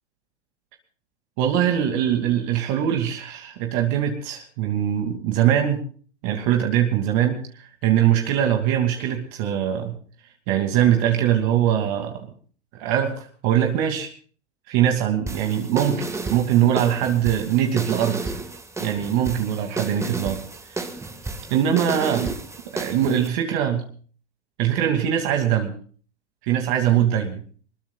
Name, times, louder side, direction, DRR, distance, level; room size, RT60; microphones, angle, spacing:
voice 1, 1.4-5.8 6.2-10.0 10.5-12.3 12.7-14.1 14.7-18.3 18.8-20.4 20.7-20.8 21.5-22.4 22.7-23.9 24.6-25.7 26.4-27.4, right 10 dB, 45° right, 3 dB, 2.7 m, -22 dB
sound 1, 15.3-23.3, right 3 dB, 10° right, 1.7 m, -32 dB
23.0 x 21.0 x 2.4 m, 0.43 s
hypercardioid pair, 110°, 34 cm